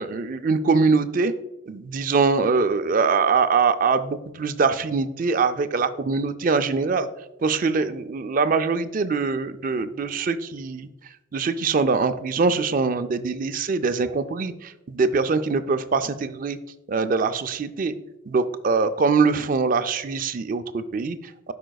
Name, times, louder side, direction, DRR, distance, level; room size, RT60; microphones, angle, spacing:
voice 1, 0.0-1.3 1.7-7.1 7.4-10.9 11.3-16.6 16.9-17.9 18.3-21.5, right 4 dB, 40° right, 10 dB, 0.3 m, -23 dB
12.5 x 5.0 x 2.3 m, 0.98 s
head